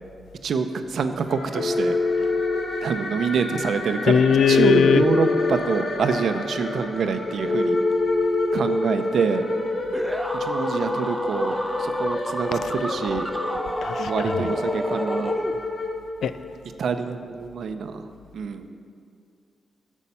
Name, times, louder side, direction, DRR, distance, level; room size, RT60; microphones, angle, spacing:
voice 1, 0.4-2.3 2.8-7.8 8.5-9.4 10.3-13.3 14.0-15.3 16.8-18.1 18.3-18.7, right 5 dB, 75° right, 8 dB, 0.6 m, -26 dB
sound 1, 1.3-16.6, left 2 dB, 65° left, 1.2 m, -30 dB
Telephone, 1.6-2.6 4.5-5.5 7.5-8.5, left 3 dB, 30° left, 1.2 m, -23 dB
voice 2, 4.1-5.1 12.6-12.7 13.8-14.5 16.2-16.3, left 7 dB, 85° left, 13 dB, 0.3 m, -20 dB
sound 2, 9.9-16.0, right 1 dB, 5° right, 0.3 m, -32 dB
11.0 x 7.3 x 5.6 m, 2.4 s
wide cardioid pair, 130°, 0 cm